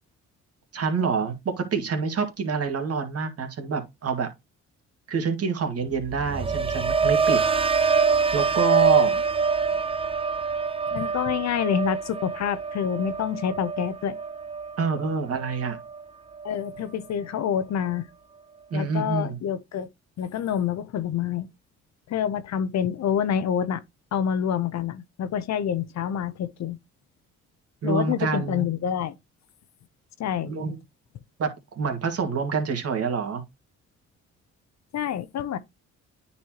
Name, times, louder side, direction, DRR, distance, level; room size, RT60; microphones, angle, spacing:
voice 1, 0.7-4.3 5.1-7.4 8.3-9.2 14.8-15.8 18.7-19.4 27.8-28.6 30.4-30.8 31.4-33.4, right 5 dB, 50° right, 2.1 m, -27 dB
sound 1, 5.9-16.0 16.4-16.8, right 5 dB, 20° right, 0.6 m, -25 dB
voice 2, 10.9-14.2 16.4-18.1 18.7-19.9 20.2-21.5 22.1-23.8 24.1-26.8 27.8-29.2 30.2-30.5 34.9-35.6, left 8 dB, 60° left, 0.8 m, -27 dB
9.4 x 4.3 x 3.0 m
cardioid pair, 90°, 30 cm